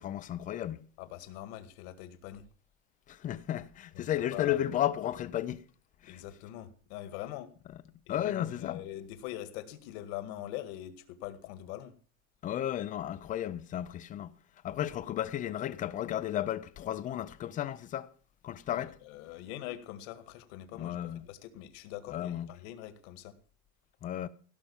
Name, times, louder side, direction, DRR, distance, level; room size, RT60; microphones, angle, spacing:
voice 1, 0.0-0.8 3.1-5.6 6.0-6.2 8.1-8.8 12.4-14.3 14.6-18.1 18.4-19.0 20.7-21.3 22.1-22.5 24.0-24.3, left 12 dB, 20° left, 0.5 m, -33 dB
voice 2, 1.0-2.4 3.9-4.6 6.1-7.5 8.1-10.9 11.2-11.9 18.7-23.3, left 13 dB, 60° left, 1.9 m, -43 dB
17.0 x 5.7 x 7.1 m
supercardioid pair, 155°, 36 cm